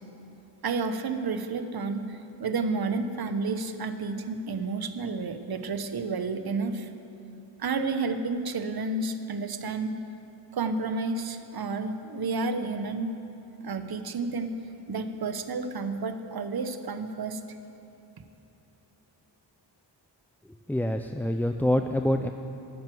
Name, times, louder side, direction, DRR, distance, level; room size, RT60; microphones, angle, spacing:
voice 1, 0.6-6.9 7.6-10.0 10.5-13.2 13.6-14.5 14.9-17.4, right 3 dB, 55° right, 9 dB, 1.0 m, -31 dB
voice 2, 20.5-22.3, left 1 dB, 5° left, 5 dB, 0.3 m, -26 dB
13.5 x 9.4 x 7.7 m, 2.9 s
wide cardioid pair, 95°, 44 cm